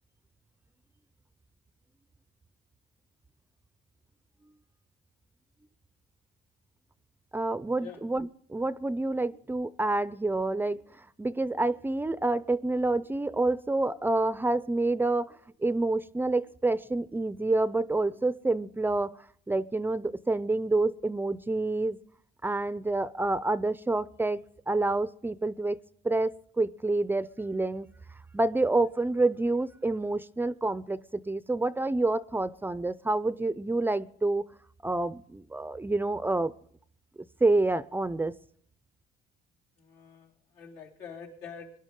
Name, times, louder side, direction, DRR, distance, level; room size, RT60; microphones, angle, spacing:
voice 1, 7.3-10.8 11.2-15.4 15.6-19.2 19.5-22.0 22.4-24.4 24.7-25.8 26.0-27.9 28.3-34.4 34.8-36.5 37.4-38.3, right 2 dB, 10° right, 17 dB, 0.4 m, -28 dB
voice 2, 39.8-41.7, left 6 dB, 90° left, -2 dB, 3.6 m, -45 dB
22.5 x 11.5 x 3.7 m, 0.62 s
cardioid pair, 110°, 17 cm